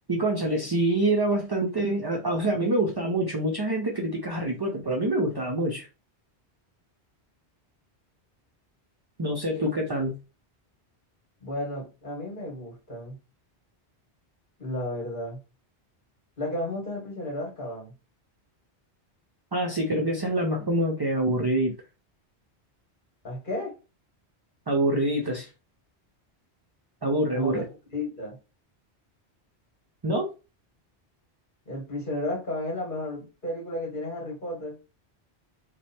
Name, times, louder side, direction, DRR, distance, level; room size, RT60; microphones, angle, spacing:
voice 1, 0.1-5.9 9.2-10.1 19.5-21.7 24.7-25.5 27.0-27.6 30.0-30.3, right 1 dB, 30° right, 0.4 m, -26 dB
voice 2, 11.4-13.2 14.6-15.4 16.4-17.9 23.2-23.8 27.3-27.6 27.9-28.4 31.7-34.8, left 1 dB, 50° left, 1.8 m, -33 dB
3.1 x 2.2 x 4.2 m
omnidirectional pair, 1.1 m